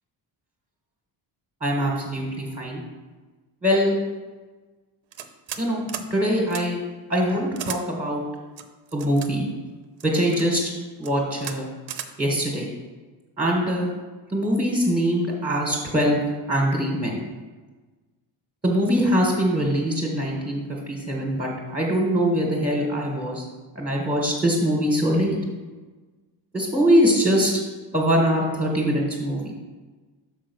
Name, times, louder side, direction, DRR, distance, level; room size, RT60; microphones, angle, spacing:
voice 1, 1.6-2.8 3.6-3.9 5.6-5.8 6.1-6.8 7.1-8.2 8.9-9.4 10.0-10.7 11.0-11.7 12.2-12.7 13.4-13.9 14.3-16.2 16.5-17.2 18.6-23.5 23.7-25.4 26.5-27.6 27.9-29.5, equal, 15° right, -3 dB, 1.5 m, -22 dB
sound 1, 5.1-5.6 5.9-6.1 6.5-6.6 7.5-7.8 8.6-9.3 10.0-10.5 11.0-11.1 11.4-11.6 11.9-12.1, right 9 dB, 75° right, 0.8 m, -34 dB
6.1 x 5.1 x 6.2 m, 1.3 s
cardioid pair, 130°, 46 cm